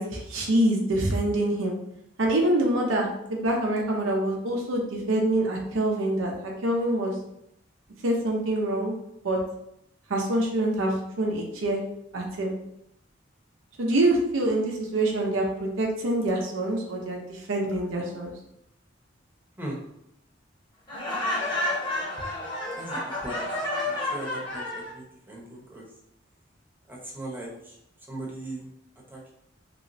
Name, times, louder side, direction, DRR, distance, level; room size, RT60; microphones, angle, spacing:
voice 1, 0.0-1.7 2.2-6.3 6.6-7.1 8.0-8.9 9.2-9.4 10.1-11.8 12.1-12.5 13.8-15.4 15.8-17.2 17.5-18.3, right 1 dB, 85° right, -1 dB, 0.6 m, -25 dB
Laughter, 20.9-24.9, left 1 dB, 25° left, 0.9 m, -30 dB
voice 2, 22.8-23.5 23.8-25.9 26.9-27.8 28.1-28.7 29.1-29.3, right 1 dB, 10° right, -4 dB, 0.8 m, -38 dB
3.0 x 3.0 x 2.6 m, 0.80 s
head